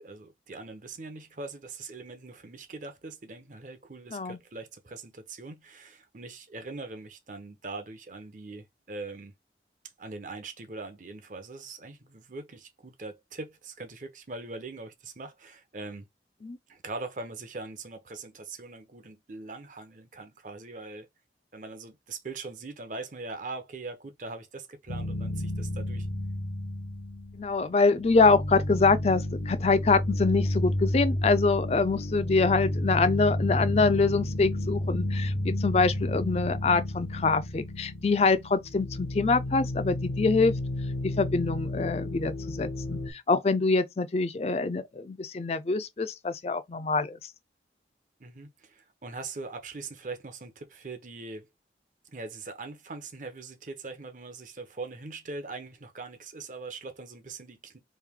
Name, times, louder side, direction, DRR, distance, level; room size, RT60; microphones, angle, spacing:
voice 1, 0.0-9.3 10.0-16.1 16.7-21.1 21.5-26.1 48.2-51.5 52.0-57.8, right 3 dB, 45° right, 0.6 m, -41 dB
sound 1, 24.9-27.7 28.0-43.1, left 1 dB, 70° left, 0.8 m, -31 dB
voice 2, 27.4-40.6 41.0-47.2, left 4 dB, 35° left, 0.4 m, -25 dB
3.2 x 2.6 x 3.5 m
head